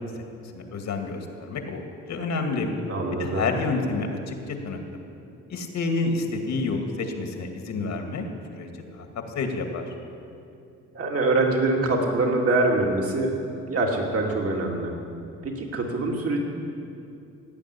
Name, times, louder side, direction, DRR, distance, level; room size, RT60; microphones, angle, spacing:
voice 1, 0.5-2.7 3.2-4.8 5.5-9.1 9.3-9.8, left 3 dB, 65° left, 4 dB, 2.2 m, -29 dB
voice 2, 2.9-3.6 10.9-13.4 13.7-14.9 15.4-16.4, right 2 dB, 50° right, 0 dB, 2.8 m, -24 dB
17.0 x 9.6 x 8.5 m, 2.6 s
cardioid pair, 90°, 30 cm